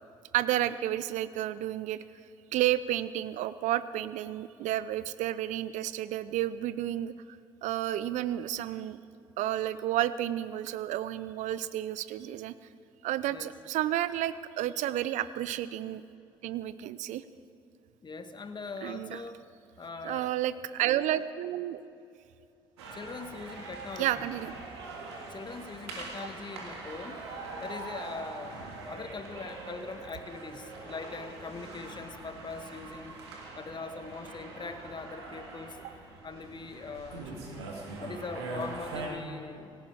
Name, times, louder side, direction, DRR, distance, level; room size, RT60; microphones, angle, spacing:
voice 1, 0.3-2.0 2.5-9.0 9.4-12.5 13.0-16.0 16.4-17.2 18.8-19.2 20.0-21.8 24.0-24.5 35.8-35.9, right 13 dB, 65° right, 15 dB, 0.6 m, -31 dB
voice 2, 18.0-19.4 19.8-20.3 22.9-24.2 25.3-27.2 27.6-33.2 33.6-35.8 36.2-37.3 38.0-39.8, left 4 dB, 35° left, 7 dB, 1.6 m, -41 dB
sound 1, 22.8-39.1, right 3 dB, 80° right, 2.1 m, -43 dB
18.0 x 17.0 x 4.7 m, 2.6 s
hypercardioid pair, 50°, 14 cm